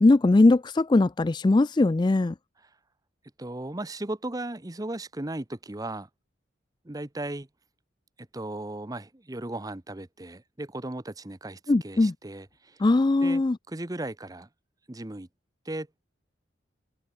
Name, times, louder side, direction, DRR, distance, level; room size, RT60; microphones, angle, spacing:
voice 1, 0.0-2.3 11.7-12.1 12.8-13.6, left 2 dB, 25° left, 0.3 m, -20 dB
voice 2, 3.4-6.1 6.8-7.5 8.2-12.8 13.2-14.5 14.9-15.3 15.6-15.9, right 1 dB, 20° right, 0.8 m, -36 dB
head